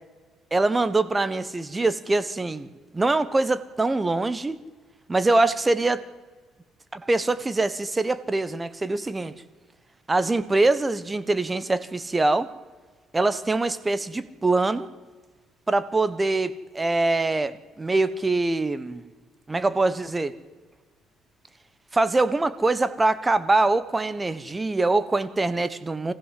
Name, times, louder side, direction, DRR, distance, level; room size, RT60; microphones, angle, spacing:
voice 1, 0.5-4.6 5.1-6.0 6.9-9.3 10.1-12.5 13.1-14.9 15.7-19.0 19.5-20.3 21.9-26.1, right 2 dB, 20° right, 14 dB, 1.2 m, -23 dB
24.5 x 15.5 x 7.7 m, 1.4 s
cardioid pair, 95°, 0 cm